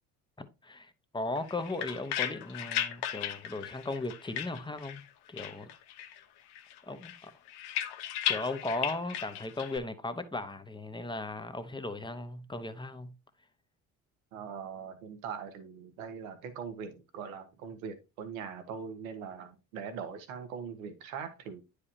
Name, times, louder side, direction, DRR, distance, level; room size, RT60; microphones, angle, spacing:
voice 1, 0.4-5.7 6.9-7.3 8.3-13.1, left 2 dB, 10° left, 1.1 m, -37 dB
sound 1, 1.4-5.1 5.4-6.2 6.5-9.8, left 11 dB, 70° left, 0.9 m, -36 dB
voice 2, 14.3-21.6, right 6 dB, 85° right, 1.3 m, -41 dB
9.6 x 5.0 x 2.8 m
hypercardioid pair, 60°, 41 cm